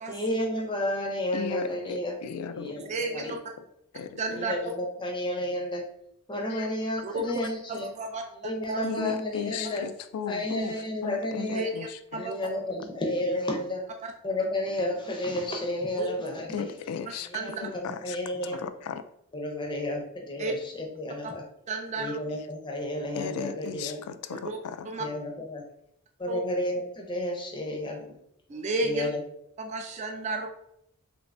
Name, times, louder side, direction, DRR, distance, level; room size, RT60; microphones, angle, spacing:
voice 1, 0.1-2.2 2.5-3.3 4.3-5.8 6.3-7.9 8.3-9.8 10.3-11.7 12.2-13.8 14.2-16.7 17.2-18.7 19.3-21.4 22.0-24.0 25.0-25.6 26.2-28.2 28.8-29.2, left 1 dB, 20° left, 1 dB, 0.5 m, -32 dB
voice 2, 1.3-2.7 3.9-4.2 6.5-6.7 8.8-10.7 11.0-12.3 16.5-17.3 17.6-18.2 18.6-19.0 23.1-24.9, left 7 dB, 80° left, 11 dB, 0.3 m, -35 dB
voice 3, 2.9-3.4 4.2-4.5 7.0-7.2 7.7-8.2 8.7-9.0 9.6-9.7 11.5-12.4 14.0-14.1 16.0-16.1 17.3-17.6 20.4-20.5 21.7-22.2 24.3-24.6 24.8-25.1 26.3-26.4 28.5-29.1 29.6-30.5, right 2 dB, 30° right, 3 dB, 0.3 m, -32 dB
3.0 x 2.5 x 3.3 m, 0.75 s
head